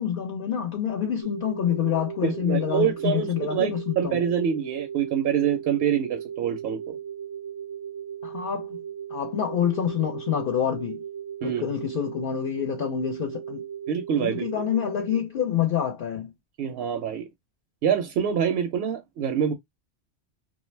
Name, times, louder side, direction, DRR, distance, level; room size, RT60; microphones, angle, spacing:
voice 1, 0.0-4.2 8.2-8.8 9.1-11.0 11.4-13.6 14.2-16.3, left 9 dB, 60° left, 0.7 m, -27 dB
sound 1, 1.2-15.2, right 8 dB, 30° right, 0.5 m, -37 dB
voice 2, 2.2-7.0 11.4-11.6 13.9-14.6 16.6-17.3 17.8-19.5, right 8 dB, 65° right, 0.7 m, -26 dB
2.4 x 2.2 x 3.1 m
omnidirectional pair, 1.2 m